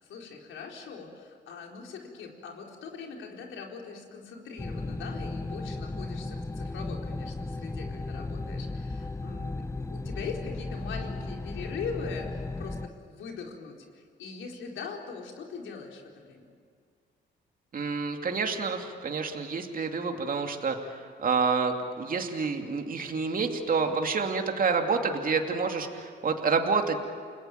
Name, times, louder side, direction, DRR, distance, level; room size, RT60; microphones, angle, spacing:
voice 1, 0.0-16.4, left 5 dB, 75° left, 1 dB, 4.5 m, -41 dB
sound 1, 4.6-12.9, left 2 dB, 15° left, 1.0 m, -35 dB
voice 2, 17.7-27.0, right 5 dB, 45° right, 4 dB, 2.6 m, -28 dB
29.5 x 20.5 x 9.2 m, 2.1 s
cardioid pair, 90°, 20 cm